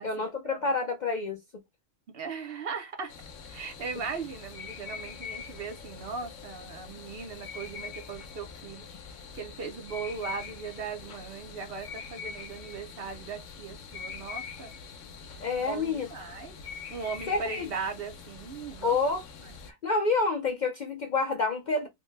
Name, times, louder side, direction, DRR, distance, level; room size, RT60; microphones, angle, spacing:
voice 1, 0.0-1.4 15.4-16.1 17.3-17.7 18.8-19.2 19.7-21.9, left 3 dB, 55° left, 0.5 m, -28 dB
voice 2, 2.1-3.1 3.5-8.8 9.3-14.7 15.6-16.5 16.9-19.0 19.4-19.5, right 5 dB, 60° right, 0.8 m, -38 dB
sound 1, 3.1-19.7, left 6 dB, 85° left, 1.0 m, -44 dB
3.2 x 2.2 x 3.1 m
omnidirectional pair, 1.3 m